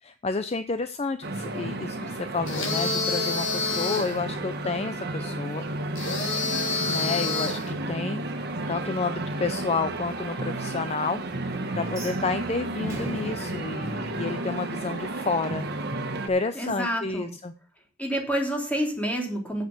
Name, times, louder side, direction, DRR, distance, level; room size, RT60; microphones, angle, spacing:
voice 1, 0.0-5.7 6.5-8.2 8.7-11.2 11.5-15.7 16.3-17.5, left 4 dB, 30° left, 10 dB, 0.5 m, -30 dB
sound 1, 1.2-16.3, right 2 dB, 55° right, 1.5 m, -32 dB
sound 2, 2.5-4.2 6.0-7.7, left 3 dB, 70° left, 3.0 m, -28 dB
sound 3, 11.8-14.9, right 1 dB, 15° right, 4.2 m, -42 dB
voice 2, 16.5-17.3 18.0-19.6, equal, 5° left, 1 dB, 3.0 m, -28 dB
8.2 x 8.1 x 6.4 m, 0.39 s
head